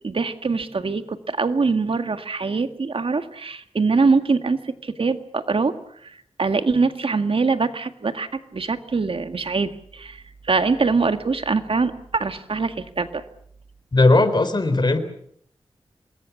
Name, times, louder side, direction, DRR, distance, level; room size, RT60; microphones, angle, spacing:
voice 1, 0.0-5.7 6.0-6.1 6.4-13.2, right 4 dB, 60° right, 8 dB, 1.9 m, -23 dB
voice 2, 13.9-15.0, left 2 dB, 45° left, 10 dB, 4.2 m, -17 dB
27.0 x 21.5 x 7.2 m, 0.67 s
wide cardioid pair, 60°, 10 cm